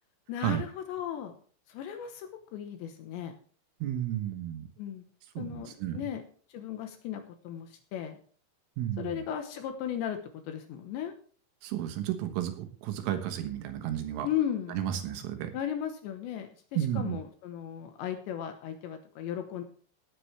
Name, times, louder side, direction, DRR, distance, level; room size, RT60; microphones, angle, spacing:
voice 1, 0.3-1.4 1.7-3.3 4.8-5.1 5.4-6.2 6.5-8.2 9.0-11.1 14.2-14.8 15.5-19.6, left 10 dB, 75° left, 6 dB, 3.0 m, -36 dB
voice 2, 3.8-4.7 5.4-6.0 8.8-9.2 11.6-14.3 14.7-15.5 16.8-17.2, right 11 dB, 80° right, 7 dB, 3.8 m, -32 dB
18.0 x 8.6 x 3.4 m, 0.43 s
omnidirectional pair, 5.9 m